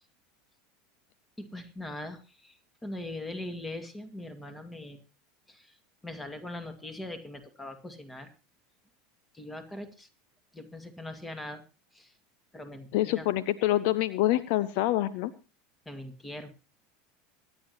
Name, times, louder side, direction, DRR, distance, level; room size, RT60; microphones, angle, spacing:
voice 1, 1.4-5.0 5.5-5.8 6.0-8.3 9.3-10.1 10.5-11.6 11.9-12.1 12.5-13.2 15.9-16.5, left 1 dB, 10° left, 8 dB, 2.1 m, -41 dB
voice 2, 12.9-15.3, left 15 dB, 55° left, 16 dB, 0.6 m, -26 dB
25.0 x 9.9 x 2.9 m, 0.31 s
figure-of-eight pair, 75°, 0 cm